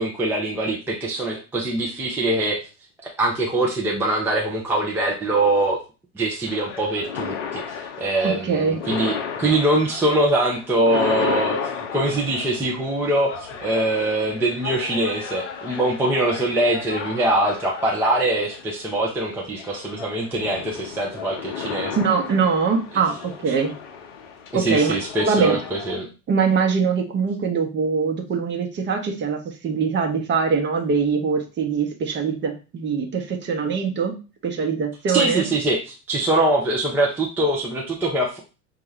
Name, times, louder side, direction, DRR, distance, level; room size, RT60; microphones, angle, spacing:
voice 1, 0.0-2.6 3.0-5.8 6.1-11.6 11.9-22.0 24.5-26.1 35.1-38.4, right 1 dB, 5° right, -2 dB, 0.5 m, -23 dB
sound 1, 6.5-26.0, left 6 dB, 55° left, 0.7 m, -34 dB
voice 2, 8.2-8.8 22.0-23.1 23.4-23.7 24.5-24.9 25.2-25.6 26.3-34.1 34.4-35.5, right 5 dB, 25° right, 3 dB, 0.8 m, -22 dB
5.3 x 2.3 x 3.1 m, 0.32 s
figure-of-eight pair, 80°, 43 cm